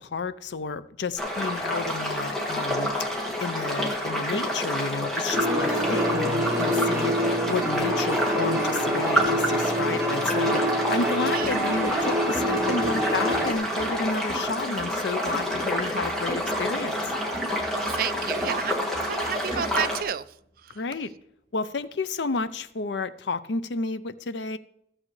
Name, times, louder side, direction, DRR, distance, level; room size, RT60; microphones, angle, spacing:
voice 1, 0.0-3.1 3.4-7.1 7.5-17.1 20.7-21.1 21.5-24.6, left 4 dB, 80° left, 0.5 m, -31 dB
sound 1, 1.2-20.0, equal, 5° left, 1.7 m, -28 dB
sound 2, 5.3-13.5, equal, 15° right, 1.1 m, -26 dB
voice 2, 11.3-11.6 17.7-20.2, right 8 dB, 55° right, 0.4 m, -31 dB
sound 3, 11.4-20.0, right 1 dB, 30° right, 3.7 m, -40 dB
15.0 x 7.3 x 3.2 m
head